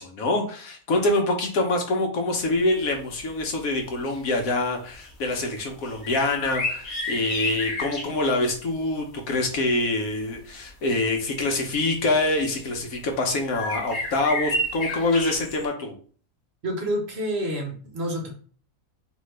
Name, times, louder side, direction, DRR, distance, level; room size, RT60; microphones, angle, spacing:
voice 1, 0.0-15.9, left 2 dB, 75° left, 3 dB, 1.3 m, -25 dB
sound 1, 2.8-2.9 3.3-3.4 3.8-4.5 4.9-5.1 5.8-8.2 10.3-10.4 11.4-11.5 12.1-12.7 13.5-15.6, left 1 dB, 50° left, 1.2 m, -31 dB
voice 2, 16.6-18.3, equal, 50° right, 1 dB, 1.1 m, -28 dB
3.7 x 3.1 x 3.2 m, 0.43 s
omnidirectional pair, 1.5 m